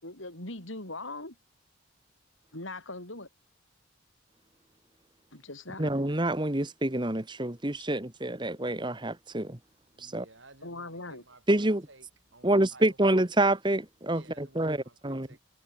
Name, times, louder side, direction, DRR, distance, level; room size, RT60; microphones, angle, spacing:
voice 1, 0.0-1.3 2.5-3.3 5.3-5.9 10.6-11.2, left 2 dB, 70° left, 7.5 m, -40 dB
voice 2, 5.8-9.6 10.0-10.2 11.5-11.8 12.4-15.3, right 1 dB, 20° right, 1.5 m, -27 dB
voice 3, 9.9-13.0 14.0-15.4, right 2 dB, 65° right, 6.8 m, -55 dB
head